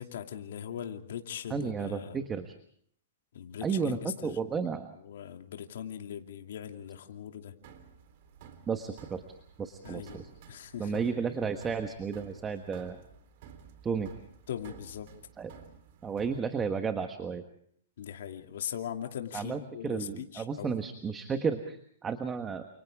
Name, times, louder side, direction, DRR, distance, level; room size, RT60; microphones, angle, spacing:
voice 1, 0.0-2.2 3.3-4.6 4.9-7.5 9.8-10.2 10.5-11.1 14.5-15.1 18.0-20.8, left 9 dB, 65° left, 4 dB, 2.6 m, -40 dB
voice 2, 1.5-2.5 3.6-4.9 8.7-9.2 9.6-10.2 10.8-13.0 13.8-14.1 15.4-15.5 16.0-17.4 19.3-22.6, right 6 dB, 15° right, 7 dB, 1.3 m, -33 dB
sound 1, 7.6-16.4, right 7 dB, 45° right, 3.6 m, -53 dB
29.5 x 29.0 x 3.6 m, 0.63 s
hypercardioid pair, 160°, 0 cm